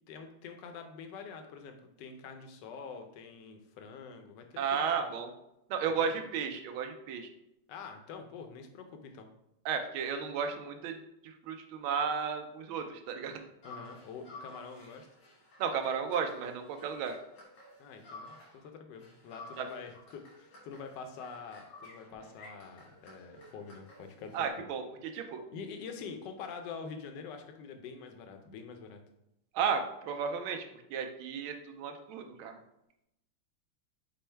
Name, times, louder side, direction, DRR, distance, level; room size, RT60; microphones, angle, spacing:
voice 1, 0.1-4.9 7.7-9.3 13.6-15.1 17.8-24.7 25.5-29.0, left 5 dB, 70° left, 5 dB, 1.0 m, -46 dB
voice 2, 4.6-5.3 5.7-7.3 9.6-11.0 11.2-13.4 15.6-17.2 19.6-19.7 24.3-24.8 25.1-25.4 29.5-30.6 30.9-32.5, right 6 dB, 75° right, 5 dB, 1.4 m, -33 dB
sound 1, 13.6-18.7 19.0-24.5, left 2 dB, 90° left, 2.3 m, -53 dB
5.3 x 2.1 x 4.4 m, 0.84 s
omnidirectional pair, 2.4 m